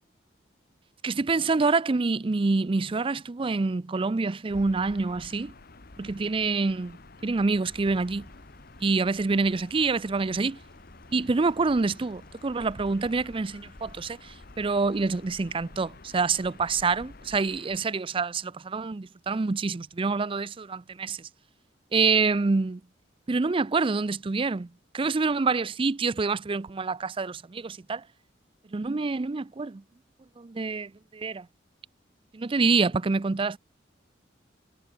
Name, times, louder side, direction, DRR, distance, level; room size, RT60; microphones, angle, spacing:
voice 1, 1.0-5.5 6.0-7.0 7.2-8.3 8.8-10.6 11.1-14.2 14.6-21.2 21.9-22.8 23.3-24.7 24.9-28.0 28.7-29.8 30.4-31.5 32.3-33.6, right 4 dB, 30° right, 0.4 m, -26 dB
Gull seagull / Ocean, 4.5-17.9, left 3 dB, 50° left, 1.3 m, -50 dB
sound 1, 7.7-17.0, equal, 5° left, 7.2 m, -56 dB
head